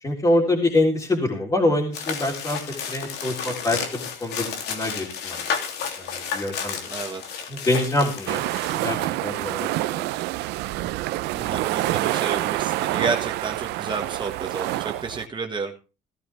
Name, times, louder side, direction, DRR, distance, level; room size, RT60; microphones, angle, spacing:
voice 1, 0.0-2.6 2.9-5.4 6.0-6.8 7.5-8.4 8.7-10.0, left 1 dB, 20° left, -2 dB, 3.7 m, -25 dB
sound 1, 1.9-8.8, left 6 dB, 75° left, 3.0 m, -32 dB
voice 2, 6.9-7.2 11.3-15.7, right 4 dB, 25° right, 2 dB, 1.8 m, -30 dB
sound 2, 8.3-15.3, right 16 dB, 90° right, 0.7 m, -27 dB
16.5 x 13.5 x 3.5 m, 0.33 s
cardioid pair, 110°, 17 cm